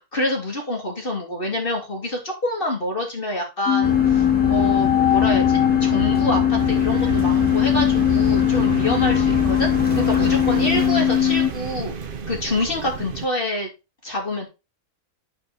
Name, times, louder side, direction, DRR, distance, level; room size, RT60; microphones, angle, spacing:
voice 1, 0.0-11.9 12.3-13.7 14.0-14.5, left 1 dB, 35° left, 1 dB, 2.9 m, -27 dB
sound 1, 3.7-11.5, left 11 dB, 80° left, 1.2 m, -19 dB
sound 2, 3.8-10.9, left 1 dB, 5° left, 1.8 m, -28 dB
sound 3, 6.6-13.3, right 7 dB, 45° right, 0.8 m, -32 dB
8.1 x 7.0 x 4.1 m, 0.27 s
omnidirectional pair, 1.5 m